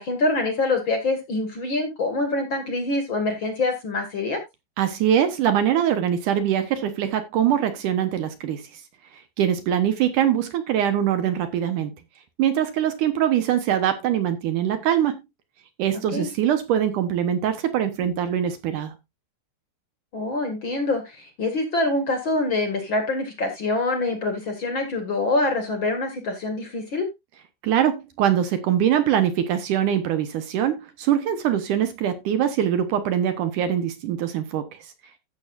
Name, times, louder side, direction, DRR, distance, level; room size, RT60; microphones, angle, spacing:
voice 1, 0.0-4.4 16.1-16.3 20.1-27.1, left 2 dB, 45° left, 1.6 m, -25 dB
voice 2, 4.8-8.6 9.4-11.9 12.4-15.2 15.8-19.0 27.6-34.7, right 10 dB, 70° right, 2.0 m, -23 dB
15.5 x 6.9 x 2.5 m
omnidirectional pair, 4.8 m